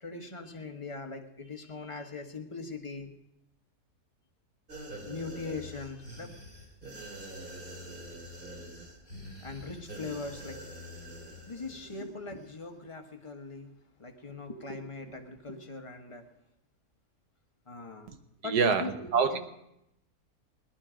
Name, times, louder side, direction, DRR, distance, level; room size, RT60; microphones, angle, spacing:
voice 1, 0.0-3.1 5.0-6.3 9.4-10.6 11.5-13.7 14.0-16.2 17.7-18.1 18.4-19.4, left 3 dB, 20° left, 4 dB, 1.2 m, -40 dB
sound 1, 4.7-12.1 12.4-12.5, right 1 dB, 35° right, 3.0 m, -45 dB
voice 2, 18.4-19.4, right 6 dB, 85° right, 8 dB, 1.5 m, -26 dB
18.0 x 11.5 x 5.0 m, 0.82 s
omnidirectional pair, 1.6 m